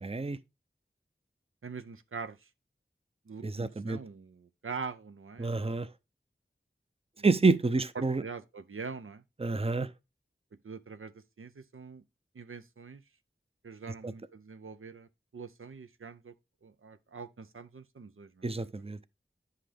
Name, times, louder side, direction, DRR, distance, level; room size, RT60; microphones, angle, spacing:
voice 1, 0.0-0.4 3.4-4.0 5.4-5.9 7.2-8.2 9.4-9.9 14.0-14.1 18.4-19.0, right 3 dB, 30° right, 0.5 m, -28 dB
voice 2, 1.6-2.4 3.3-5.7 7.2-7.3 8.0-9.2 10.6-11.1 11.4-12.0 12.3-13.0 13.6-15.1 15.3-16.3 16.6-18.7, right 5 dB, 80° right, 0.6 m, -43 dB
9.7 x 5.7 x 3.3 m
wide cardioid pair, 45°, 21 cm